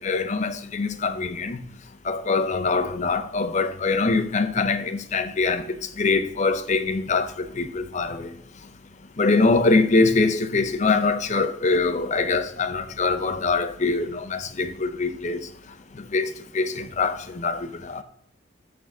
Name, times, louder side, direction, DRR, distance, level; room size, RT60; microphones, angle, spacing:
voice 1, 0.0-1.6 2.1-5.6 6.0-7.3 7.6-8.3 9.2-15.5 16.1-18.0, left 3 dB, 35° left, 0.6 m, -23 dB
6.8 x 6.0 x 5.9 m
head